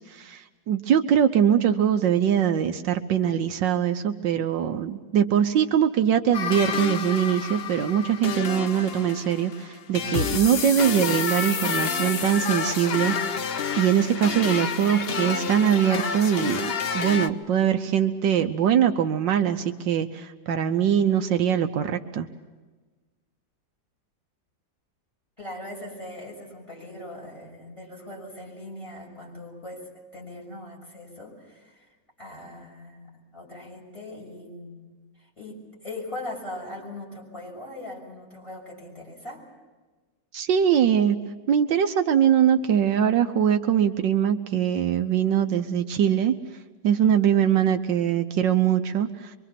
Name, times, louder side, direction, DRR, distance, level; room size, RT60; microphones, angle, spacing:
voice 1, 0.0-13.5 13.8-22.3 40.3-41.2 41.5-46.4 46.8-49.3, right 9 dB, 75° right, 7 dB, 1.5 m, -22 dB
sound 1, 6.3-17.3, left 6 dB, 55° left, 0.7 m, -29 dB
voice 2, 25.4-31.9 32.2-34.9 35.2-39.4, left 1 dB, 15° left, -2 dB, 6.9 m, -40 dB
25.0 x 24.5 x 5.9 m, 1.3 s
omnidirectional pair, 2.0 m